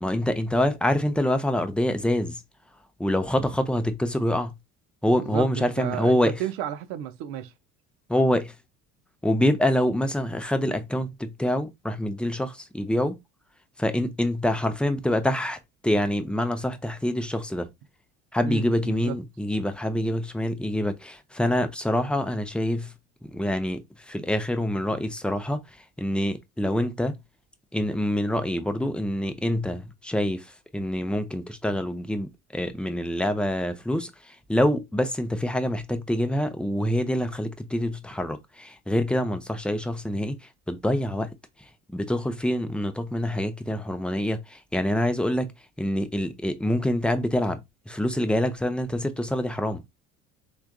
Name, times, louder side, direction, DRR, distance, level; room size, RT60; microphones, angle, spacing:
voice 1, 0.0-2.4 3.0-4.5 5.0-6.3 8.1-8.5 9.2-13.2 13.8-17.7 18.3-22.9 23.2-27.2 27.7-40.4 40.7-41.3 41.9-45.5 45.8-49.8, left 1 dB, 5° left, 0.4 m, -26 dB
voice 2, 5.1-7.5 18.4-19.2, right 11 dB, 65° right, 0.6 m, -33 dB
3.4 x 2.3 x 2.3 m
hypercardioid pair, 65°, 39 cm